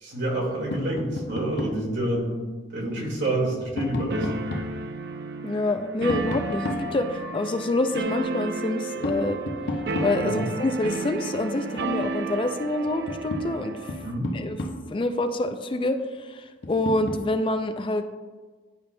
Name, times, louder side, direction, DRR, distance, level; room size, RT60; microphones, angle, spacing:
voice 1, 0.0-4.5 10.2-10.4 14.0-14.3, right 1 dB, 85° right, -3 dB, 1.9 m, -28 dB
Tap, 0.7-1.9 3.2-4.8 6.1-7.5 9.0-10.6 12.4-12.5 12.9-15.0 16.6-17.3, left 1 dB, 65° left, 0.7 m, -33 dB
sound 1, 4.1-14.2, right 4 dB, 60° right, 0.5 m, -33 dB
voice 2, 5.4-9.4 10.0-13.9 14.3-14.6 14.9-18.0, left 2 dB, 30° left, 8 dB, 0.3 m, -27 dB
10.5 x 5.2 x 2.2 m, 1.4 s
head